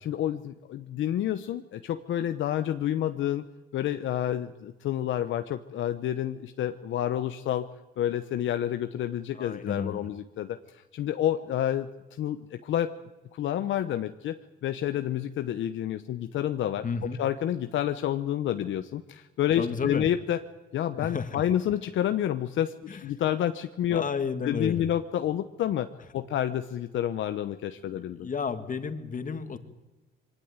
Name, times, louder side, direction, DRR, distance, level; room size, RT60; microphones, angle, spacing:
voice 1, 0.0-3.4 3.7-7.7 8.0-10.6 10.9-11.9 12.2-12.9 13.3-16.8 17.2-20.4 20.7-22.7 23.0-24.1 24.4-28.3, left 11 dB, 75° left, 8 dB, 1.0 m, -29 dB
voice 2, 9.4-10.1 16.8-17.2 19.6-20.1 21.0-21.4 22.9-23.0 23.9-24.9 26.1-26.3 27.9-29.6, left 5 dB, 40° left, 9 dB, 2.2 m, -32 dB
23.0 x 17.5 x 9.6 m, 1.1 s
cardioid pair, 90°, 20 cm